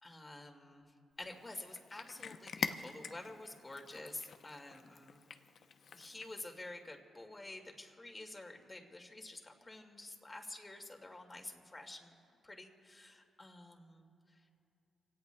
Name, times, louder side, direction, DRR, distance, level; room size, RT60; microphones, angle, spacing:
voice 1, 0.0-5.2 5.9-12.2 12.4-14.1, left 2 dB, 25° left, 3 dB, 2.1 m, -49 dB
Cat, 1.3-6.5, left 6 dB, 65° left, 0.7 m, -45 dB
29.5 x 17.5 x 2.3 m, 2.6 s
supercardioid pair, 65°, 0 cm